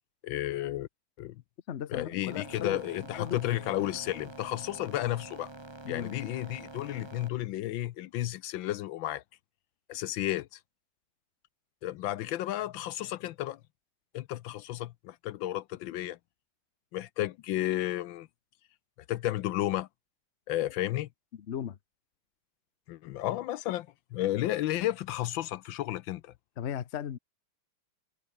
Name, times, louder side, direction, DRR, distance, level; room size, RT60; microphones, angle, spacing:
voice 1, 0.2-0.9 1.2-1.4 1.9-5.5 5.9-9.2 9.9-10.6 11.8-13.6 14.1-16.2 16.9-18.3 19.1-19.9 20.5-21.1 22.9-26.3, left 14 dB, 75° left, 1.3 m, -32 dB
voice 2, 1.7-2.8 3.1-3.4 5.8-6.2 21.5-21.8 26.6-27.2, left 9 dB, 50° left, 0.8 m, -36 dB
sound 1, 2.3-7.3, right 2 dB, 15° right, 1.4 m, -47 dB
omnidirectional pair, 2.3 m